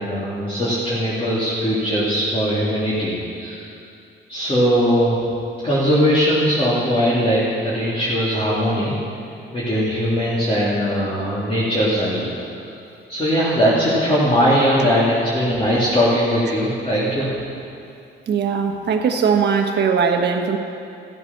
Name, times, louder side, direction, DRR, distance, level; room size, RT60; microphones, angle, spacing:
voice 1, 0.0-3.7 4.3-5.2 5.6-8.9 9.5-12.3 13.1-17.3, equal, 30° left, -9 dB, 3.1 m, -20 dB
voice 2, 18.3-20.6, right 6 dB, 60° right, 4 dB, 1.4 m, -19 dB
15.5 x 8.3 x 5.9 m, 2.6 s
cardioid pair, 90°, 20 cm